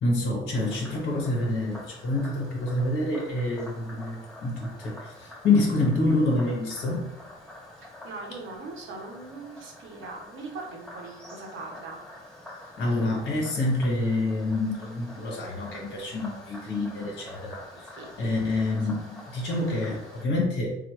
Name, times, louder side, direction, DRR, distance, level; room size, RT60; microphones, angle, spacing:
voice 1, 0.0-7.1 12.8-17.9 18.2-20.8, left 2 dB, 65° left, -2 dB, 1.0 m, -27 dB
Frog, 0.5-20.2, left 1 dB, 5° left, 1.1 m, -47 dB
voice 2, 7.8-12.0 18.0-18.1, right 3 dB, 75° right, 0 dB, 1.0 m, -40 dB
3.8 x 2.1 x 3.2 m, 0.78 s
cardioid pair, 90°, 20 cm